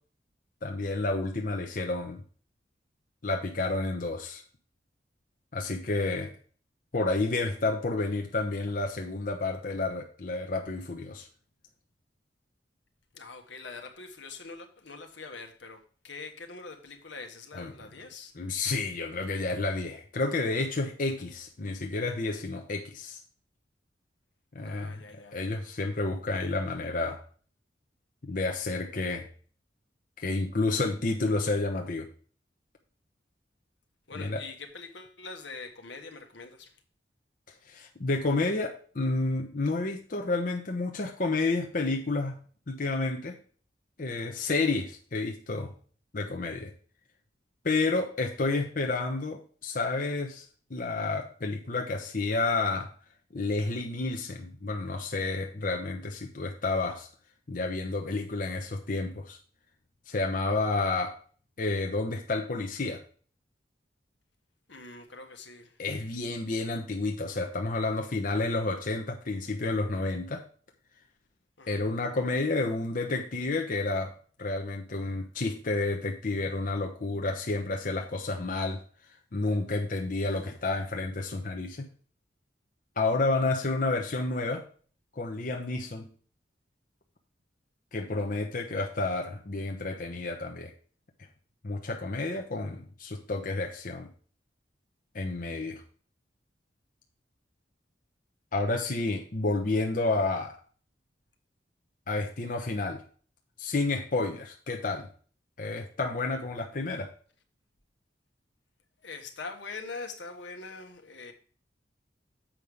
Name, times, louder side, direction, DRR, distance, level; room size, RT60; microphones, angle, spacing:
voice 1, 0.6-2.2 3.2-4.4 5.5-6.3 6.9-11.3 17.5-17.7 18.4-23.2 24.5-25.0 25.3-27.2 28.2-29.3 30.2-32.1 34.2-34.4 37.7-42.4 42.7-43.4 44.0-45.7 46.1-46.7 47.6-50.4 50.7-52.9 53.3-57.1 57.5-59.4 60.1-61.2 61.6-63.0 65.8-70.4 71.7-74.1 74.4-78.8 79.3-81.8 83.0-84.6 85.2-86.1 87.9-90.7 91.6-94.1 95.1-95.8 98.5-100.6 102.1-103.0 103.6-105.1 105.6-107.1, left 3 dB, 50° left, 0.9 m, -30 dB
voice 2, 13.1-18.3 24.6-25.5 34.1-36.8 64.7-65.8 71.6-71.8 109.0-111.3, left 4 dB, 80° left, 1.4 m, -43 dB
7.5 x 5.4 x 4.8 m
head